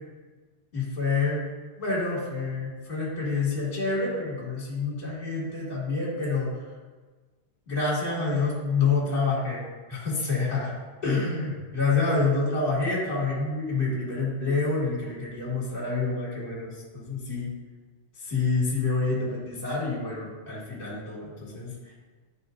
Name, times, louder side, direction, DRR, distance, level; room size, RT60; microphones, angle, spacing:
voice 1, 0.7-1.5 1.8-6.5 7.7-9.6 9.9-10.7 11.0-17.5 18.2-21.9, left 4 dB, 20° left, -6 dB, 1.9 m, -27 dB
10.0 x 4.3 x 2.6 m, 1.3 s
omnidirectional pair, 3.5 m